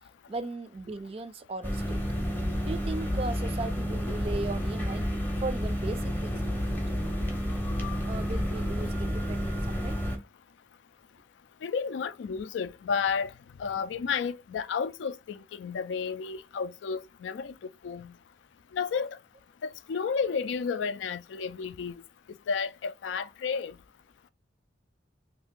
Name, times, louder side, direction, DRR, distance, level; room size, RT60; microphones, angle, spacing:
voice 1, 0.3-2.0 2.7-5.1 5.4-6.8 8.0-10.0, right 3 dB, 30° right, 0.3 m, -37 dB
sound 1, 1.6-10.2, equal, 10° left, 0.6 m, -30 dB
voice 2, 11.6-13.3 13.6-17.5 17.8-18.1 18.7-19.2 19.6-21.9 22.5-23.7, left 6 dB, 85° left, 0.3 m, -32 dB
2.7 x 2.5 x 3.5 m
head